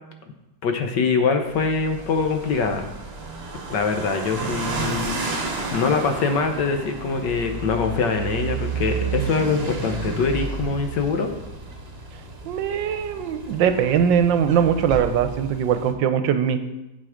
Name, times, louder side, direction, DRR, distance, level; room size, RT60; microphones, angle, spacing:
voice 1, 0.6-2.9 3.7-5.1 5.7-11.3, left 5 dB, 70° left, 6 dB, 1.5 m, -23 dB
sound 1, 1.4-15.9, right 4 dB, 40° right, 1.1 m, -32 dB
voice 2, 12.4-16.6, right 8 dB, 80° right, 9 dB, 1.3 m, -21 dB
7.7 x 7.7 x 5.0 m, 0.99 s
omnidirectional pair, 2.1 m